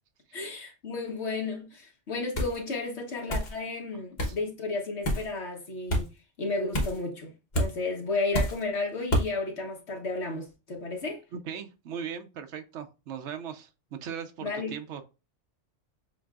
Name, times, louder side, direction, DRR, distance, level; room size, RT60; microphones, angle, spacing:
voice 1, 0.3-6.1 6.4-11.2 14.4-14.7, left 3 dB, 65° left, 1.3 m, -33 dB
sound 1, 2.4-2.6 3.3-3.5 4.2-4.4 5.0-5.3 5.9-6.1 6.7-7.0 7.5-7.7 8.3-8.6 9.1-9.3, equal, 40° left, 1.1 m, -27 dB
voice 2, 11.3-15.0, right 7 dB, 75° right, 1.0 m, -39 dB
7.3 x 2.6 x 2.4 m
omnidirectional pair, 1.2 m